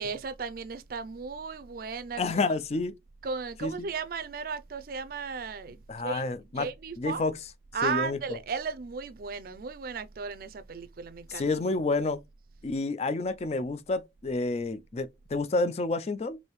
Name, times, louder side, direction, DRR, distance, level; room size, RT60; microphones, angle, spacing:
voice 1, 0.0-2.5 3.2-6.2 6.6-7.2 7.7-11.5, right 5 dB, 55° right, 0.4 m, -35 dB
voice 2, 2.2-2.9 3.6-3.9 5.9-6.7 7.0-7.3 7.8-8.4 11.3-12.2 12.6-16.4, left 3 dB, 35° left, 0.4 m, -29 dB
4.7 x 2.6 x 3.1 m
head